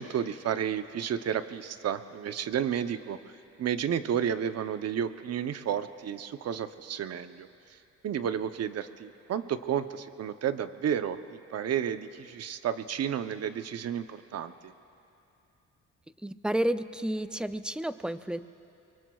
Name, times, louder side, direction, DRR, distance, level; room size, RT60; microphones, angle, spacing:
voice 1, 0.0-3.2 3.6-7.5 8.0-14.7, right 9 dB, 55° right, 11 dB, 0.7 m, -32 dB
voice 2, 16.2-18.4, right 1 dB, 5° right, 12 dB, 0.4 m, -31 dB
24.5 x 23.5 x 2.4 m, 2.8 s
cardioid pair, 90°, 30 cm